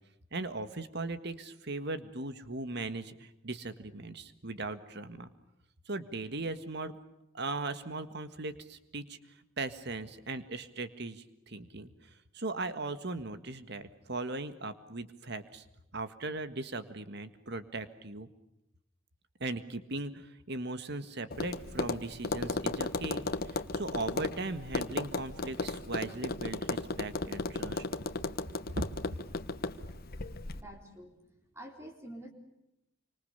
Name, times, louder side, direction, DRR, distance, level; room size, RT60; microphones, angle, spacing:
voice 1, 0.3-5.3 5.9-6.9 7.3-9.2 9.6-15.6 15.9-18.3 19.4-27.9 28.7-29.2, right 2 dB, 60° right, 11 dB, 1.8 m, -38 dB
Tap, 21.3-30.6, left 2 dB, 50° left, 1.3 m, -35 dB
voice 2, 30.5-32.3, right 1 dB, 15° right, 3 dB, 4.0 m, -48 dB
27.5 x 25.5 x 6.8 m, 0.86 s
head